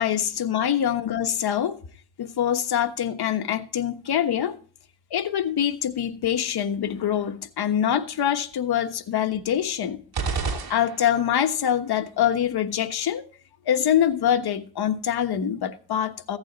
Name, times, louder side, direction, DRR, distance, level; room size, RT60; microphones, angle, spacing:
voice 1, 0.0-1.8 2.2-4.6 5.1-10.0 10.7-13.3 13.7-16.4, left 9 dB, 80° left, 1.3 m, -24 dB
sound 1, 10.1-11.4, right 4 dB, 70° right, 2.7 m, -29 dB
15.0 x 8.7 x 4.0 m
cardioid pair, 90°, 39 cm